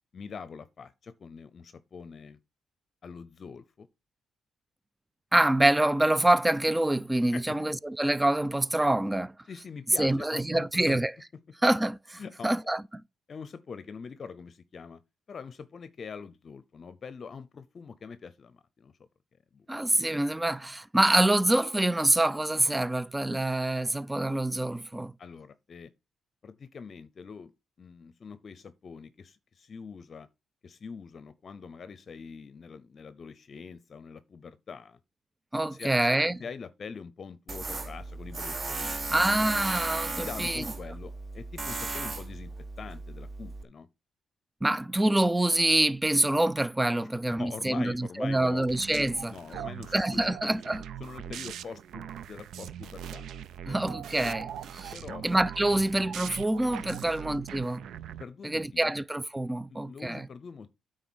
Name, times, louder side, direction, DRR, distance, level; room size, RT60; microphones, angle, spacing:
voice 1, 0.1-2.4 3.0-3.9 7.3-7.6 9.5-11.0 12.2-12.5 13.3-15.0 15.3-18.9 19.5-19.7 25.2-25.9 26.4-27.5 27.8-30.3 30.6-35.0 35.7-36.1 36.4-39.1 40.2-42.5 42.8-43.9 47.0-48.7 48.9-50.5 51.0-53.2 53.7-53.8 54.9-55.3 57.0-57.1 58.2-58.9 59.7-60.7, left 5 dB, 45° left, 0.6 m, -44 dB
voice 2, 5.3-9.3 10.0-11.1 11.6-12.8 19.7-25.1 35.5-36.4 39.1-40.6 44.6-49.3 49.9-50.8 53.7-54.9 55.2-57.9 58.4-60.2, right 1 dB, 10° right, 0.4 m, -26 dB
Tools, 37.5-43.6, right 3 dB, 35° right, 1.2 m, -36 dB
sound 1, 48.6-58.2, right 9 dB, 75° right, 0.5 m, -41 dB
9.2 x 3.9 x 6.2 m
cardioid pair, 90°, 0 cm